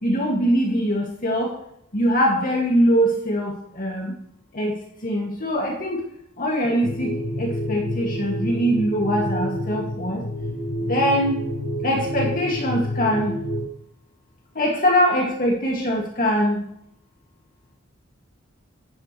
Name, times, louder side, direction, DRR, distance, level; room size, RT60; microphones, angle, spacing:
voice 1, 0.0-1.5 1.9-3.5 3.8-4.1 4.5-4.7 5.0-6.0 6.4-7.1 7.4-10.2 10.9-11.4 11.8-13.3 14.6-16.6, equal, 45° left, -2 dB, 2.2 m, -22 dB
sound 1, 6.8-13.7, equal, 85° left, 1.5 m, -28 dB
11.0 x 9.4 x 3.3 m, 0.72 s
head